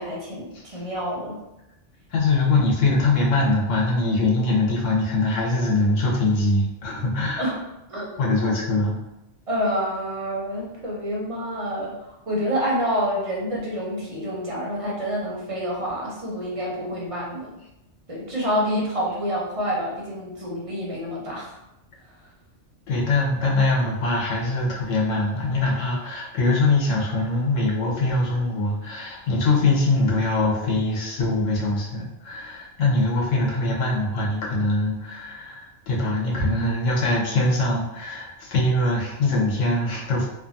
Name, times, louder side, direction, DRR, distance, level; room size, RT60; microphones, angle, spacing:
voice 1, 0.0-1.4 7.4-7.6 7.9-8.5 9.5-17.6 18.1-21.6, equal, 35° right, -4 dB, 0.6 m, -28 dB
voice 2, 2.1-7.5 8.2-8.9 22.9-40.3, left 2 dB, 80° left, -3 dB, 1.1 m, -22 dB
2.6 x 2.3 x 2.5 m, 0.90 s
omnidirectional pair, 1.3 m